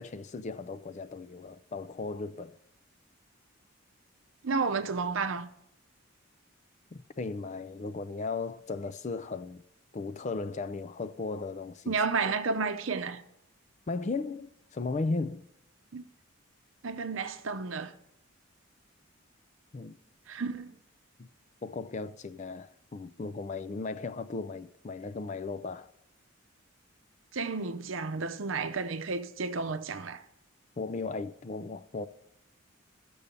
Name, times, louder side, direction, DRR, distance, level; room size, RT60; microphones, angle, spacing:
voice 1, 0.0-2.5 6.9-9.6 9.9-12.0 12.2-12.3 13.9-15.5 19.7-20.0 21.2-21.3 21.6-25.9 30.8-32.1, left 3 dB, 35° left, 0.4 m, -36 dB
voice 2, 4.4-5.5 11.9-13.2 15.9-16.0 16.8-17.9 20.3-20.8 27.3-30.2, right 4 dB, 70° right, 0.7 m, -32 dB
15.5 x 6.8 x 5.3 m
head